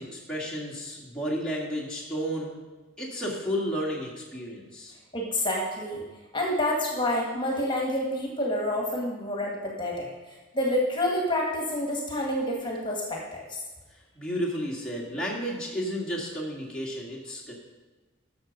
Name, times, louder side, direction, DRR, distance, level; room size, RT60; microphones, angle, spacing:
voice 1, 0.0-2.6 3.0-5.0 13.9-17.5, equal, 5° left, -5 dB, 1.9 m, -32 dB
voice 2, 5.1-6.0 6.3-10.1 10.5-13.4, left 1 dB, 25° left, -1 dB, 1.9 m, -28 dB
12.0 x 7.1 x 5.3 m, 1.3 s
head